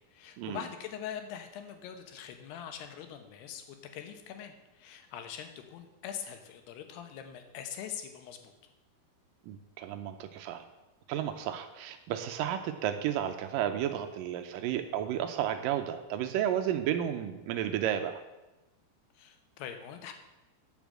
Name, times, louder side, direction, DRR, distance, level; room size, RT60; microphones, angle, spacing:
voice 1, 0.1-8.5 19.1-20.1, left 9 dB, 80° left, 6 dB, 3.2 m, -43 dB
voice 2, 9.5-10.6 11.1-18.2, right 10 dB, 85° right, 7 dB, 1.9 m, -32 dB
10.0 x 7.0 x 7.5 m, 1.0 s
omnidirectional pair, 4.7 m